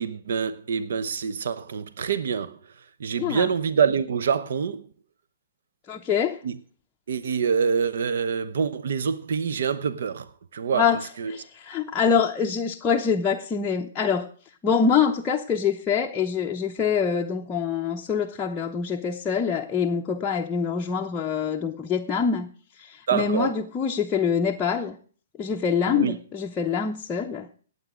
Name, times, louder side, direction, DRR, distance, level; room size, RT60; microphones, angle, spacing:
voice 1, 0.0-2.6 3.0-4.8 6.4-6.6 7.1-10.9 11.2-11.4 23.1-23.5 25.9-26.2, right 6 dB, 70° right, 0.8 m, -26 dB
voice 2, 3.2-3.5 5.9-6.4 10.7-11.0 11.3-14.3 14.6-22.5 22.8-25.0 25.4-27.5, left 6 dB, 20° left, 0.8 m, -25 dB
18.0 x 8.1 x 3.7 m
hypercardioid pair, 135°, 0 cm